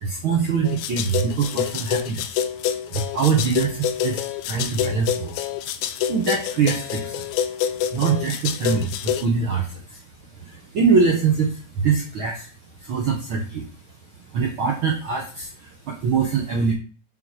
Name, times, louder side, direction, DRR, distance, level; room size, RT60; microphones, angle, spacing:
voice 1, 0.0-2.3 2.9-5.4 6.1-7.3 7.9-10.0 10.4-12.5 12.8-13.7 14.3-16.7, right 5 dB, 65° right, 0 dB, 1.3 m, -23 dB
sound 1, 0.6-9.2, left 9 dB, 80° left, 1.8 m, -27 dB
7.5 x 4.1 x 4.7 m, 0.38 s
omnidirectional pair, 3.7 m